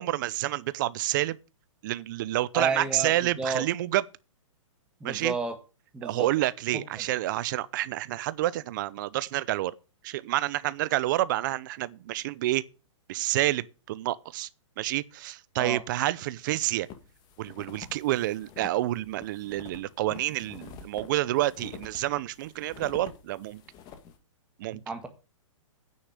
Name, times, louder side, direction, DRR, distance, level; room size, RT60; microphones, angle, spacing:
voice 1, 0.0-1.4 1.8-4.0 5.0-5.3 6.0-9.7 10.0-12.6 13.1-14.5 14.8-16.9 17.4-23.6 24.6-24.8, right 15 dB, 40° right, 0.7 m, -28 dB
voice 2, 2.5-3.6 5.0-5.6 5.9-6.3 7.0-7.1 15.6-15.8 24.7-25.1, right 3 dB, 5° right, 1.7 m, -31 dB
sound 1, 16.8-24.2, left 7 dB, 25° left, 1.9 m, -47 dB
9.7 x 6.6 x 8.2 m
hypercardioid pair, 155°, 16 cm